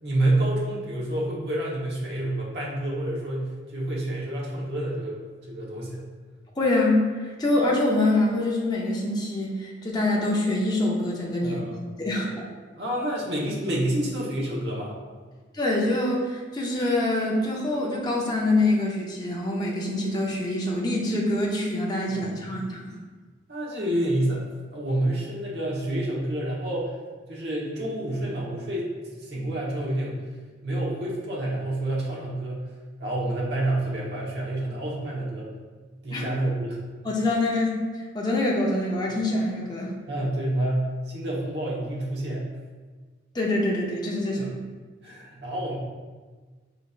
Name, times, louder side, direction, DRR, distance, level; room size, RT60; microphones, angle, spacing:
voice 1, 0.0-5.2 5.5-6.0 11.4-11.8 12.8-15.0 22.1-22.6 23.5-24.4 24.7-26.9 27.3-28.9 29.2-30.2 30.6-32.7 33.0-35.5 36.0-36.8 40.1-42.5 44.4-44.5 45.0-45.8, right 1 dB, 60° right, -4 dB, 1.1 m, -28 dB
voice 2, 6.6-11.6 12.0-12.4 15.5-22.9 36.1-36.2 37.0-37.7 38.1-39.9 43.3-44.5, left 2 dB, 20° left, -3 dB, 0.6 m, -25 dB
5.0 x 4.1 x 2.4 m, 1.4 s
head